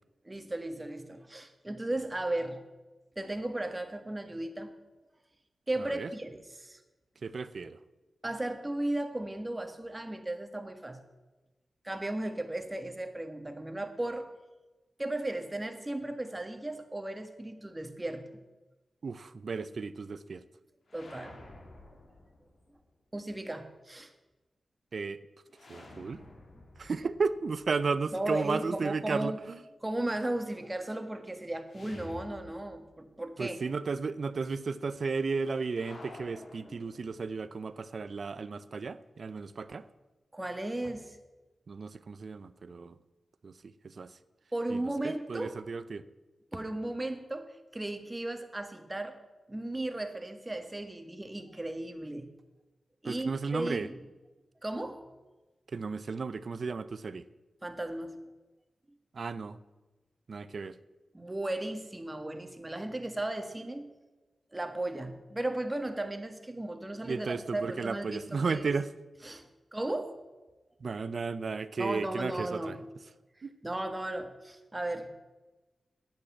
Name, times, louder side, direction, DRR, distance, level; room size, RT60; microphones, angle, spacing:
voice 1, 0.2-2.6 3.1-4.7 5.7-6.8 8.2-11.0 11.8-14.3 15.0-18.3 20.9-21.4 23.1-24.1 28.1-29.4 29.8-33.6 40.3-41.2 44.5-45.6 46.5-49.2 49.5-52.3 53.0-54.0 54.6-55.0 57.6-58.2 61.1-63.9 64.5-68.6 69.2-70.2 71.8-72.8 73.6-75.1, right 1 dB, 20° right, 7 dB, 1.6 m, -35 dB
voice 2, 5.8-6.1 7.2-7.8 19.0-20.4 24.9-25.2 25.7-26.2 26.8-29.6 33.4-39.8 41.7-43.0 43.4-43.5 43.8-44.1 44.7-46.0 53.0-53.9 55.7-57.2 59.1-59.6 60.3-60.8 67.0-68.9 70.8-72.8 73.4-73.5, right 4 dB, 60° right, 15 dB, 0.6 m, -34 dB
sound 1, 20.9-22.8 25.5-28.5 31.7-33.1 33.4-33.5 35.7-37.5, left 2 dB, 65° left, 2.5 m, -51 dB
10.5 x 8.8 x 8.5 m, 1.2 s
cardioid pair, 65°, 0 cm